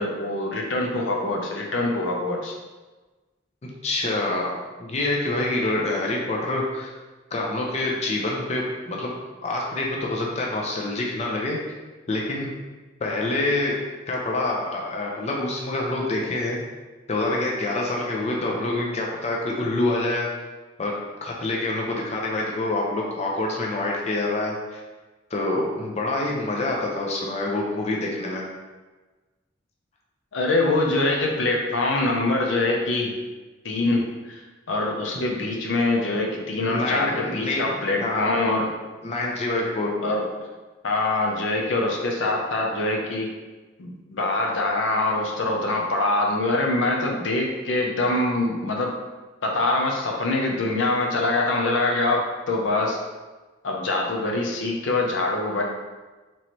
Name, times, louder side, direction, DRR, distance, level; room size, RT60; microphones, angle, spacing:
voice 1, 0.0-2.5 30.3-33.1 33.6-38.7 40.0-40.3 40.8-43.3 43.8-49.0 49.4-53.0 53.6-55.6, left 2 dB, 80° left, 0 dB, 0.6 m, -24 dB
voice 2, 3.8-6.9 7.3-9.1 9.4-11.6 12.1-12.5 13.0-13.8 14.1-16.6 17.1-20.3 20.8-24.8 25.3-28.4 36.6-37.7 38.0-38.4 39.0-40.0, left 2 dB, 35° left, -2 dB, 0.5 m, -26 dB
4.2 x 3.0 x 3.0 m, 1.2 s
head